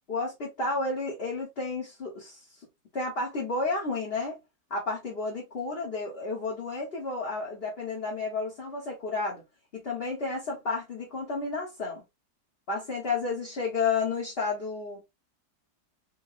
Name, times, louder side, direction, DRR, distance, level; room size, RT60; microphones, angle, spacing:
voice 1, 0.1-2.7 2.9-4.4 4.7-9.4 9.7-12.0 12.7-15.0, left 3 dB, 35° left, 1.2 m, -31 dB
4.8 x 2.3 x 2.5 m
omnidirectional pair, 2.0 m